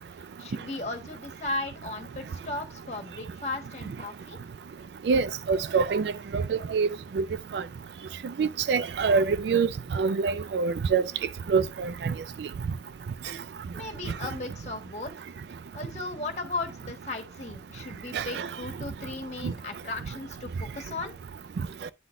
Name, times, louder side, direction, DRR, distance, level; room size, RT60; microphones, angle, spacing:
voice 1, 0.4-4.4 13.7-15.3 15.7-21.1, left 2 dB, 40° left, 1.3 m, -36 dB
voice 2, 5.1-6.9 7.2-7.3 7.5-7.6 8.4-9.7 9.9-11.0 11.5-12.1 18.1-18.5 19.4-19.5, right 5 dB, 75° right, 0.3 m, -25 dB
9.4 x 3.9 x 2.6 m
head